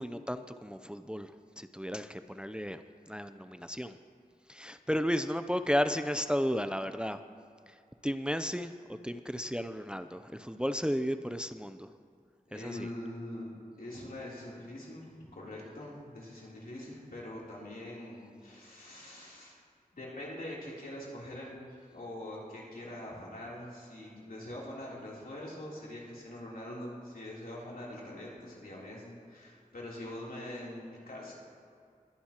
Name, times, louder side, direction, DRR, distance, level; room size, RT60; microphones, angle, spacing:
voice 1, 0.0-1.3 1.6-2.8 3.1-4.0 4.5-7.2 8.0-11.9 12.5-12.9, equal, 5° right, 9 dB, 0.5 m, -33 dB
voice 2, 12.5-13.5 13.8-19.6 19.9-31.4, left 1 dB, 85° left, -6 dB, 3.3 m, -43 dB
21.0 x 10.5 x 2.9 m, 2.3 s
wide cardioid pair, 45°, 15 cm